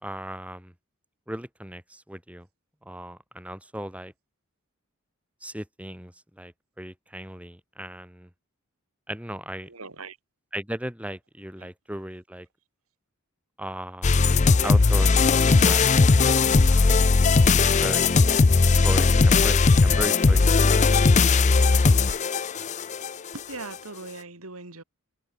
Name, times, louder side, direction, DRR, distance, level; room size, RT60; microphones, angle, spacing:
voice 1, 0.0-0.7 1.3-2.5 2.8-4.1 5.4-8.3 9.1-9.7 10.5-12.5 13.6-14.3 14.6-15.9 16.2-17.1 17.8-18.2 18.8-20.9, right 1 dB, 5° right, 4.9 m, -36 dB
voice 2, 9.7-10.2 11.6-11.7 23.3-24.8, right 3 dB, 85° right, 3.6 m, -40 dB
sound 1, 14.0-23.1, left 4 dB, 35° left, 0.5 m, -18 dB
head